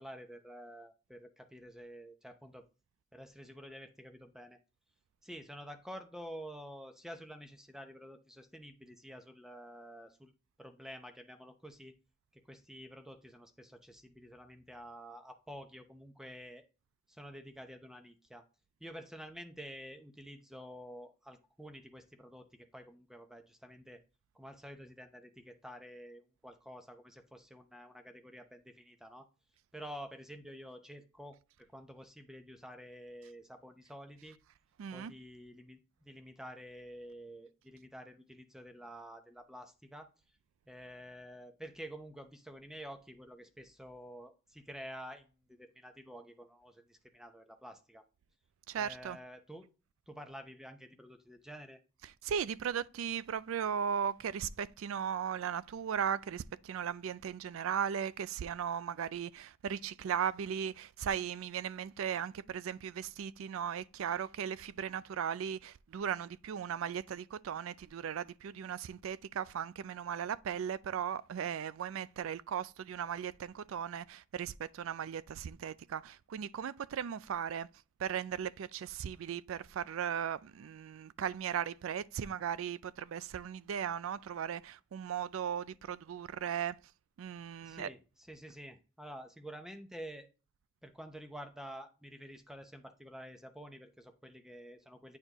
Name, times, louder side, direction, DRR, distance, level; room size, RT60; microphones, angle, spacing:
voice 1, 0.0-2.7 3.1-4.6 5.2-10.3 10.6-11.9 12.3-16.6 17.1-18.4 18.8-24.0 24.3-29.3 29.7-31.4 31.7-34.4 34.9-40.1 40.7-48.0 48.7-49.7 50.1-51.8 87.6-88.0 88.3-90.3 90.8-95.2, equal, 5° right, 0.7 m, -49 dB
voice 2, 34.8-35.1 48.7-49.2 52.0-77.7 78.0-86.8 87.2-87.9, right 8 dB, 70° right, 0.3 m, -37 dB
9.3 x 4.4 x 3.0 m
head